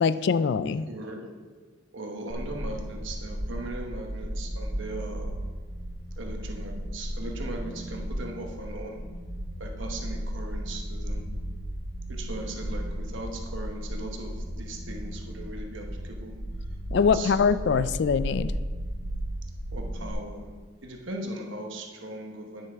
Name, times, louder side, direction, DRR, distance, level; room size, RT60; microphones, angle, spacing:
voice 1, 0.0-0.9 16.9-18.5, left 5 dB, 55° left, 14 dB, 0.3 m, -23 dB
voice 2, 0.9-1.3 1.9-5.4 6.2-9.0 9.6-11.2 12.1-16.4 17.0-17.3 19.7-20.5 20.8-22.7, right 1 dB, 65° right, 2 dB, 1.0 m, -39 dB
sound 1, 2.3-20.1, equal, 30° right, 2.2 m, -35 dB
9.7 x 8.7 x 3.5 m, 1.5 s
head